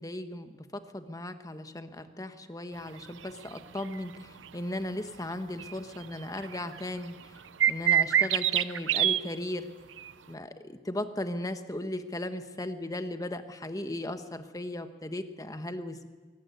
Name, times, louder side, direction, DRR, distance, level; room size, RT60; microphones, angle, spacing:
voice 1, 0.0-7.4 7.7-9.7 10.3-16.1, left 1 dB, 20° left, 9 dB, 1.3 m, -37 dB
sound 1, 3.8-3.9 4.5-4.6 5.6-5.7 6.0-6.1 6.4-6.8 7.6-9.2 10.0-10.1, right 10 dB, 85° right, 0.7 m, -24 dB
23.0 x 19.0 x 9.6 m, 1.4 s
head